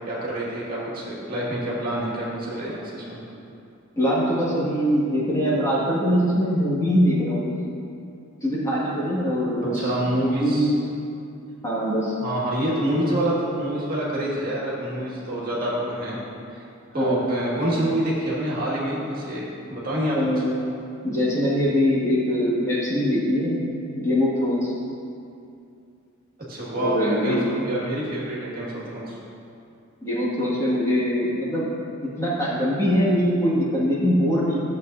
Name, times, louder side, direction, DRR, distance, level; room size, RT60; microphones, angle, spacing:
voice 1, 0.0-3.2 9.7-10.6 12.2-16.2 16.5-16.6 16.9-20.4 26.5-29.2, right 1 dB, 45° right, -7 dB, 2.0 m, -26 dB
voice 2, 4.0-7.5 8.4-9.9 10.4-10.7 11.6-12.1 16.9-17.2 20.1-20.6 21.0-24.7 26.8-27.5 30.0-31.7 32.2-34.6, equal, 15° left, -9 dB, 2.0 m, -22 dB
13.0 x 7.7 x 2.7 m, 2.5 s
head